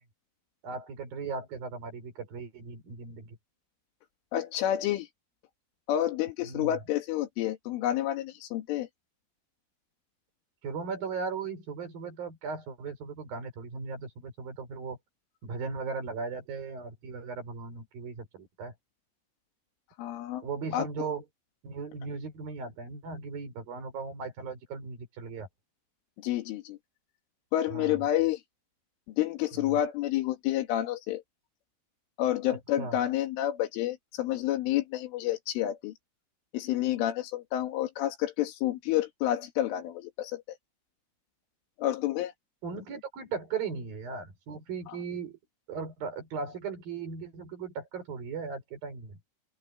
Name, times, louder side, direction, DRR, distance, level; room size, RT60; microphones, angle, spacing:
voice 1, 0.6-3.4 6.4-6.8 10.6-15.0 15.4-18.7 20.4-21.2 21.6-25.5 27.7-28.0 29.6-29.8 32.8-33.0 42.6-45.4 45.7-49.2, right 5 dB, 50° right, 7.5 m, -37 dB
voice 2, 4.3-5.1 5.9-8.9 20.0-20.4 20.7-21.1 26.2-26.8 27.5-28.4 29.2-31.2 32.2-35.9 36.5-40.4 41.8-42.3, left 12 dB, 90° left, 4.6 m, -29 dB
open air
omnidirectional pair, 5.5 m